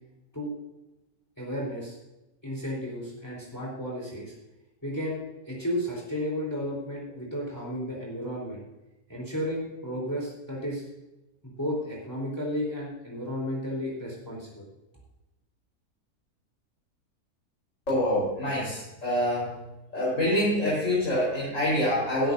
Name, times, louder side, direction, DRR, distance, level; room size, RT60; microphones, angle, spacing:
voice 1, 1.4-2.0 2.4-4.3 4.8-5.2 5.5-8.6 9.1-10.9 11.4-14.6, equal, 10° left, -3 dB, 3.9 m, -33 dB
voice 2, 17.9-19.5 19.9-22.3, left 1 dB, 55° left, -7 dB, 5.0 m, -26 dB
16.0 x 12.5 x 2.7 m, 0.99 s
omnidirectional pair, 1.6 m